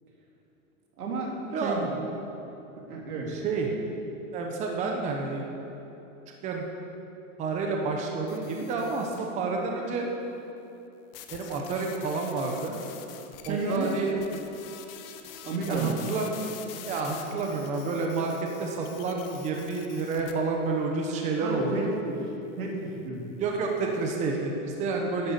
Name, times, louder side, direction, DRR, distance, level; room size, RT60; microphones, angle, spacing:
voice 1, 1.0-1.9 2.9-3.4 13.4-13.9 15.4-16.0 21.4-22.2 22.6-23.4, right 2 dB, 90° right, -1 dB, 3.7 m, -32 dB
voice 2, 3.3-3.7 4.3-5.4 6.4-6.7 7.4-10.1 11.3-12.8 13.4-14.2 15.7-16.4 16.8-18.3 18.6-21.9 23.4-25.3, right 4 dB, 15° right, 1 dB, 1.0 m, -29 dB
sound 1, 8.3-9.4 11.1-20.3, left 10 dB, 40° left, 1.0 m, -46 dB
11.0 x 9.9 x 8.2 m, 3.0 s
supercardioid pair, 165°, 43 cm